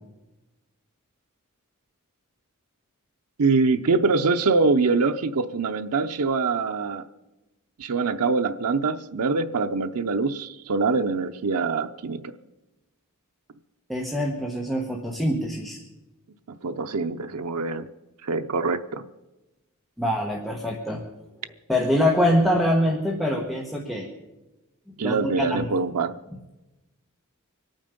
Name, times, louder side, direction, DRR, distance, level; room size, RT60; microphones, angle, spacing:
voice 1, 3.4-7.0 7.8-12.3 16.5-17.9 18.2-19.0 25.0-26.2, right 4 dB, 85° right, 7 dB, 0.6 m, -24 dB
voice 2, 13.9-15.8 20.0-21.0 21.7-24.1 25.0-25.6, equal, ahead, -1 dB, 1.2 m, -24 dB
24.5 x 9.0 x 5.3 m, 1.1 s
head